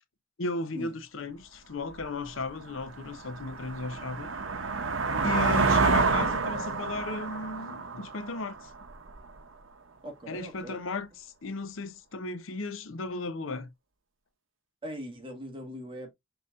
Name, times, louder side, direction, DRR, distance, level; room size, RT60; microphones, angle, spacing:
voice 1, 0.4-4.3 5.2-8.7 10.3-13.7, left 3 dB, 75° left, 0.7 m, -35 dB
sound 1, 2.0-2.1 2.6-9.2, right 4 dB, 70° right, 0.8 m, -28 dB
voice 2, 10.0-10.8 14.8-16.1, equal, 25° right, 1.5 m, -41 dB
5.6 x 3.9 x 2.4 m
head